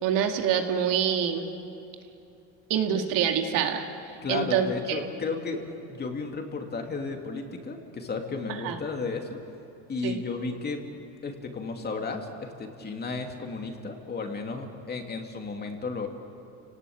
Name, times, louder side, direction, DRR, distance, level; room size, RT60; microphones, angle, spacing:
voice 1, 0.0-1.4 2.7-3.9 4.3-5.0 8.5-8.8 10.0-10.2, right 8 dB, 75° right, 4 dB, 2.4 m, -26 dB
voice 2, 4.2-5.6 5.9-9.4 9.9-10.8 11.2-16.1, left 4 dB, 30° left, 3 dB, 2.8 m, -33 dB
29.0 x 18.5 x 8.7 m, 2.8 s
cardioid pair, 120°, 34 cm